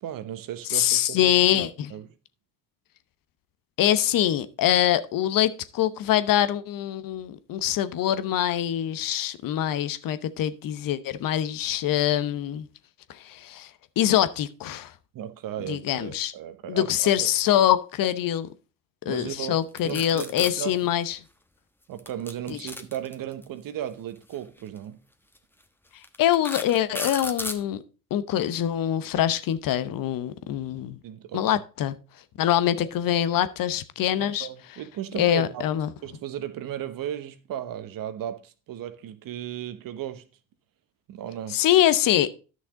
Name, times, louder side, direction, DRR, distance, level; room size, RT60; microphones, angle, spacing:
voice 1, 0.0-2.1 15.1-17.3 19.1-20.9 21.9-25.0 31.0-31.4 34.2-35.7 36.0-40.2 41.1-41.6, right 11 dB, 55° right, 1.1 m, -36 dB
voice 2, 0.7-1.9 3.8-12.7 13.1-13.7 14.0-14.9 15.7-16.3 16.7-18.5 19.0-21.2 22.5-22.6 26.2-27.8 28.1-31.0 31.3-31.9 32.4-34.5 35.2-35.9 41.5-42.3, left 11 dB, 55° left, 0.9 m, -24 dB
sound 1, 19.8-20.5 22.0-23.4 24.6-24.8 25.4-25.5 26.0-27.6, left 1 dB, 5° left, 1.2 m, -34 dB
11.0 x 6.3 x 3.8 m
hypercardioid pair, 60°, 40 cm